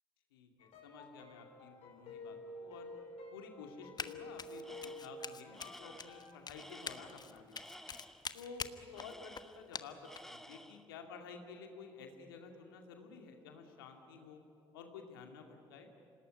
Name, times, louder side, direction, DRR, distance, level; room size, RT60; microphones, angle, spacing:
voice 1, 0.3-2.9 3.3-7.8 8.3-14.4 14.7-15.9, left 5 dB, 85° left, 4 dB, 2.3 m, -52 dB
sound 1, 0.6-6.4, left 1 dB, 65° left, 5.2 m, -50 dB
Run, 4.0-4.1 4.4-10.4, left 5 dB, 35° left, 1.3 m, -45 dB
Tools, 4.6-5.2 5.5-8.3 8.9-9.8 10.0-10.9, equal, 5° left, 1.5 m, -54 dB
26.5 x 18.5 x 9.7 m, 2.9 s
hypercardioid pair, 50°, 12 cm